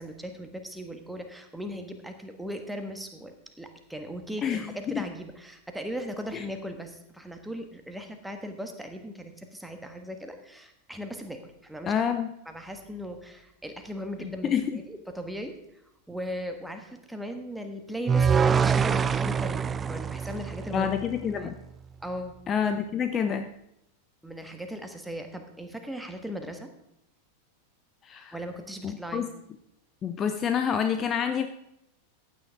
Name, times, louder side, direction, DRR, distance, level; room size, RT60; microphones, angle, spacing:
voice 1, 0.0-12.0 12.5-15.8 16.1-20.9 21.3-21.5 22.0-22.3 24.2-26.7 28.3-29.3, equal, 5° right, 5 dB, 1.5 m, -38 dB
voice 2, 4.4-5.0 6.3-6.4 11.9-12.3 14.2-14.6 20.7-21.5 22.5-23.5 28.0-28.3 28.8-29.3 30.0-31.5, left 7 dB, 25° left, 8 dB, 0.7 m, -28 dB
sound 1, 18.1-21.3, right 6 dB, 20° right, 0.4 m, -25 dB
14.5 x 9.1 x 3.6 m, 0.81 s
figure-of-eight pair, 90°, 0 cm